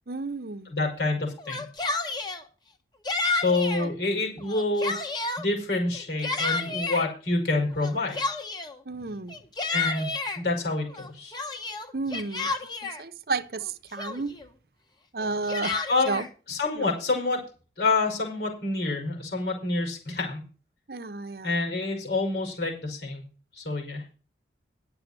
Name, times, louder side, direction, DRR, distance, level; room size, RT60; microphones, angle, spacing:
voice 1, 0.1-0.7 3.8-3.9 8.9-9.4 11.9-12.5 12.8-14.4 15.1-15.8 16.1-16.2 16.7-17.0 20.9-21.6, right 3 dB, 55° right, 0.7 m, -32 dB
voice 2, 0.7-1.6 3.3-4.9 5.4-8.2 9.7-10.1 10.3-11.4 15.9-16.2 16.5-17.4 17.8-20.4 21.4-23.2 23.5-24.0, left 3 dB, 65° left, 5.0 m, -27 dB
Yell, 1.4-2.4 3.1-3.9 4.4-5.5 5.9-7.1 7.8-8.8 9.3-10.4 10.9-13.0 13.6-13.7 14.0-14.5 15.2-16.3, left 3 dB, 25° left, 1.2 m, -30 dB
11.0 x 6.9 x 6.6 m
head